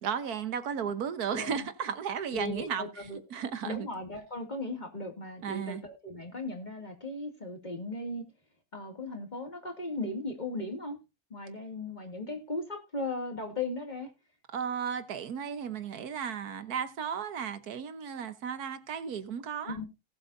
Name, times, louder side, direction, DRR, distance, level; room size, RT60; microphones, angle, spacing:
voice 1, 0.0-2.8 3.3-3.9 5.4-5.8 14.5-19.8, right 7 dB, 85° right, 1.6 m, -34 dB
voice 2, 1.3-1.7 2.3-3.2 3.6-8.2 8.7-11.0 11.3-14.1 19.6-19.9, left 2 dB, 30° left, 2.4 m, -37 dB
18.5 x 7.8 x 2.6 m
omnidirectional pair, 1.6 m